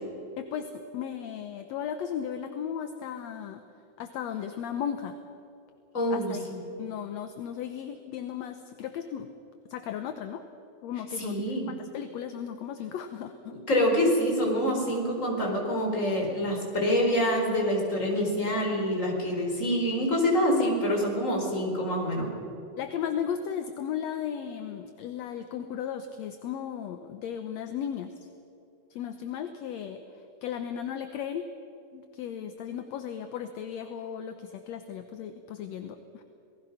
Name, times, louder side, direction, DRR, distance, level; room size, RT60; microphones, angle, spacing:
voice 1, 0.4-3.6 4.0-5.2 6.1-6.4 6.8-9.3 9.7-10.4 10.8-13.6 22.8-28.1 28.9-30.0 30.4-31.5 31.9-36.2, left 8 dB, 70° left, 8 dB, 2.0 m, -35 dB
voice 2, 5.9-6.6 11.2-11.7 13.5-22.3, equal, 25° left, 0 dB, 4.5 m, -26 dB
28.0 x 19.0 x 5.8 m, 2.9 s
omnidirectional pair, 3.4 m